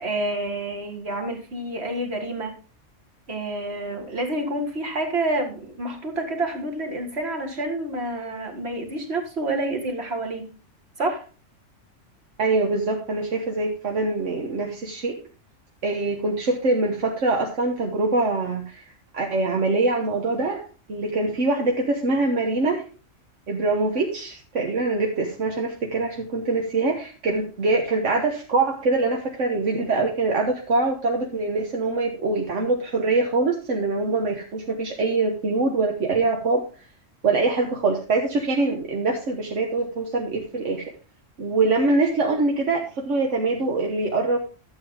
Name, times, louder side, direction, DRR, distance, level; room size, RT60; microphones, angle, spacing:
voice 1, 0.0-2.5 3.3-10.5 11.0-11.2, right 2 dB, 55° right, 3 dB, 2.2 m, -28 dB
voice 2, 12.4-15.2 15.8-18.8 19.1-20.6 20.9-22.8 23.5-36.6 37.2-40.9 41.4-44.4, right 3 dB, 70° right, 1 dB, 1.5 m, -24 dB
12.0 x 7.8 x 3.7 m, 0.35 s
omnidirectional pair, 1.3 m